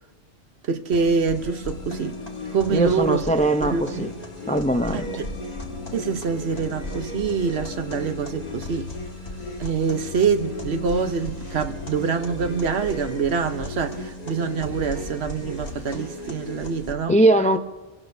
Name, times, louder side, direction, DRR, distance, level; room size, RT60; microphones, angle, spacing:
voice 1, 0.7-2.2 2.5-3.2 3.6-4.1 4.9-5.0 5.9-8.9 9.6-17.2, right 5 dB, 65° right, 1.1 m, -25 dB
sound 1, 0.9-16.9, left 1 dB, 35° left, 1.8 m, -35 dB
sound 2, 1.2-15.5, left 6 dB, 65° left, 6.5 m, -43 dB
voice 2, 2.7-4.1 4.5-5.1 17.1-17.6, right 1 dB, 10° left, 0.4 m, -20 dB
sound 3, 5.9-8.2 8.5-16.4, equal, 80° right, 2.2 m, -46 dB
28.5 x 18.0 x 2.7 m
omnidirectional pair, 1.2 m